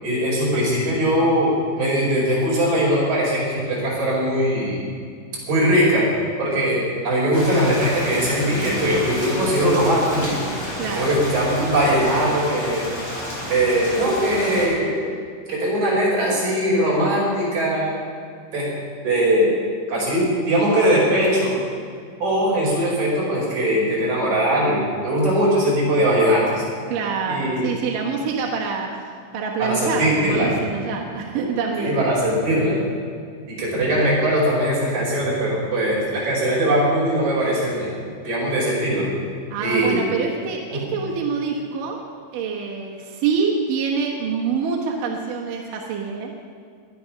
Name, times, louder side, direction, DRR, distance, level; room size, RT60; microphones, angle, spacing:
voice 1, 0.0-4.8 5.5-6.1 6.4-10.5 10.9-12.8 13.5-15.1 15.5-18.0 18.5-18.7 19.0-19.5 19.9-21.5 22.2-26.6 27.3-27.7 29.6-30.5 31.8-32.8 33.5-37.9 38.2-39.1 39.6-40.0 40.7-40.8, equal, 35° right, -5 dB, 6.1 m, -20 dB
Rain, 7.3-14.6, equal, 25° left, 4.4 m, -31 dB
voice 2, 10.8-11.2 26.9-29.0 29.3-32.0 39.5-42.0 42.3-46.3, right 5 dB, 75° right, 0 dB, 2.0 m, -26 dB
23.5 x 9.5 x 5.8 m, 2.1 s
omnidirectional pair, 5.9 m